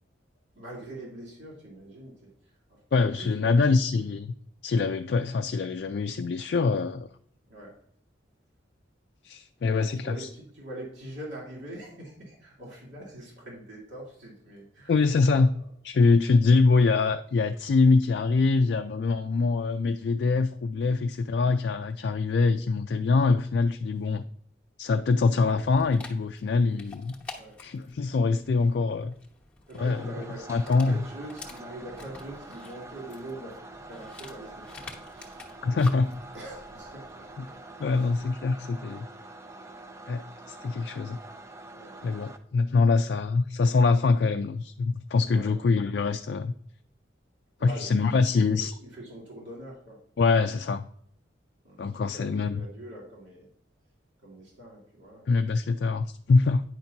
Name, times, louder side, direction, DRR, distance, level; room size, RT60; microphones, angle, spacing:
voice 1, 0.5-2.3 2.7-2.8 3.2-3.7 7.5-7.8 9.7-14.9 27.3-27.6 29.7-33.6 33.9-35.5 35.7-35.8 36.3-37.6 37.9-38.1 41.7-42.0 45.2-45.6 47.6-50.0 51.6-53.5 54.2-55.2, right 1 dB, 75° right, -4 dB, 2.7 m, -43 dB
voice 2, 2.9-4.3 4.6-7.1 9.2-10.3 14.9-15.6 15.8-24.2 24.8-29.1 29.7-30.1 30.5-31.0 35.6-36.2 37.4-37.5 37.8-39.1 40.1-41.2 42.0-46.5 47.6-48.7 50.2-50.8 51.8-52.6 55.3-56.6, left 4 dB, 60° left, 7 dB, 0.3 m, -24 dB
Dog, 25.4-38.3, left 3 dB, 5° left, 1.0 m, -48 dB
sound 1, 29.8-42.4, right 2 dB, 15° right, 0.4 m, -46 dB
9.5 x 5.9 x 2.7 m, 0.65 s
head